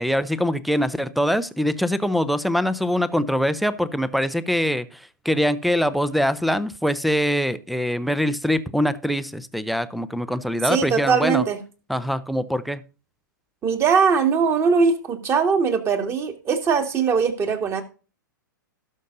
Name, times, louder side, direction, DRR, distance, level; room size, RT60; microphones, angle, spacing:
voice 1, 0.0-11.4 11.9-12.8, equal, ahead, 17 dB, 0.7 m, -23 dB
voice 2, 10.6-11.6 13.6-17.8, right 5 dB, 25° right, 7 dB, 2.1 m, -21 dB
18.0 x 6.5 x 2.6 m, 0.34 s
figure-of-eight pair, 105°, 11 cm